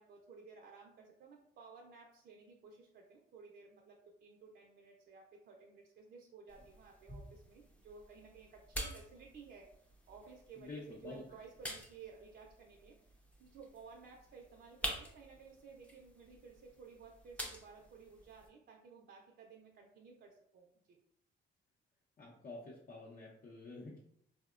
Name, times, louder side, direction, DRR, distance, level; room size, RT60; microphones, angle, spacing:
voice 1, 0.0-21.0, right 5 dB, 55° right, 0 dB, 0.4 m, -56 dB
sound 1, 6.5-18.5, equal, 5° left, 0.5 m, -48 dB
voice 2, 10.6-11.2 22.2-24.0, left 2 dB, 45° left, -4 dB, 0.6 m, -48 dB
3.6 x 2.0 x 2.4 m, 0.71 s
cardioid pair, 90°, 20 cm